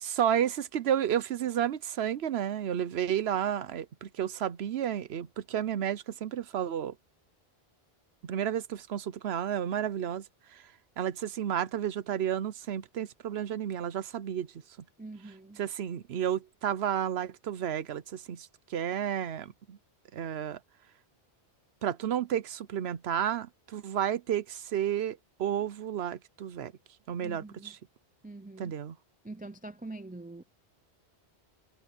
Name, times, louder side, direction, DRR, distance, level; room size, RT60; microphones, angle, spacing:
voice 1, 0.0-6.9 8.2-10.2 11.0-14.5 15.6-19.8 20.1-20.6 21.8-26.7 27.1-27.7 28.6-28.9, right 9 dB, 75° right, 1.0 m, -31 dB
voice 2, 15.0-15.6 27.2-27.8 28.2-28.7 29.2-30.4, right 2 dB, 10° right, 0.5 m, -44 dB
omnidirectional pair, 1.1 m